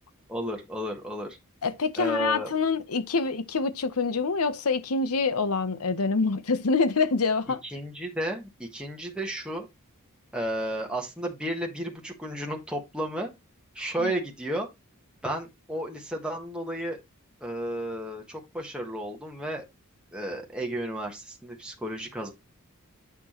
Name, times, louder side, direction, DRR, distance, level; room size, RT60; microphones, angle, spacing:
voice 1, 0.3-1.4 2.0-2.5 7.6-9.7 10.3-13.3 13.7-14.7 15.2-17.0 17.4-19.6 20.1-22.3, right 1 dB, 5° right, 1.4 m, -33 dB
voice 2, 1.6-7.6 14.0-14.1, left 4 dB, 90° left, 0.9 m, -26 dB
8.3 x 6.1 x 3.0 m
head